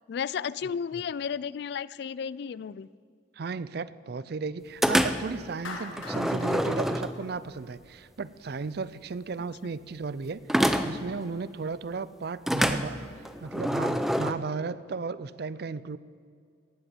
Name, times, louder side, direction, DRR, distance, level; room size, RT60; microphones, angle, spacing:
voice 1, 0.1-2.9, left 7 dB, 55° left, 20 dB, 0.3 m, -33 dB
voice 2, 3.3-13.0 13.4-16.0, right 4 dB, 55° right, 17 dB, 0.4 m, -35 dB
sound 1, 4.8-5.4 6.0-7.5 10.5-11.1 12.5-14.3, equal, ahead, 0.5 m, -26 dB
Clapping, 5.6-7.9, left 3 dB, 85° left, 2.1 m, -42 dB
18.0 x 8.1 x 7.6 m, 2.2 s
head